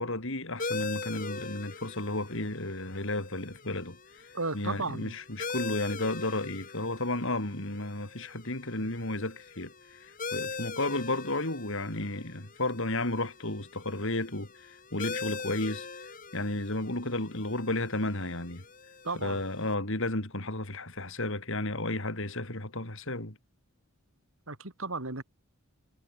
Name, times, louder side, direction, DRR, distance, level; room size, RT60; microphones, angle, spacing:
voice 1, 0.0-4.3 4.5-15.9 16.3-18.6 19.2-23.4, left 2 dB, 60° left, 3.8 m, -33 dB
sound 1, 0.6-19.7, left 4 dB, 40° left, 4.6 m, -42 dB
voice 2, 4.3-5.2 19.0-19.4 24.5-25.2, right 3 dB, 65° right, 2.8 m, -34 dB
head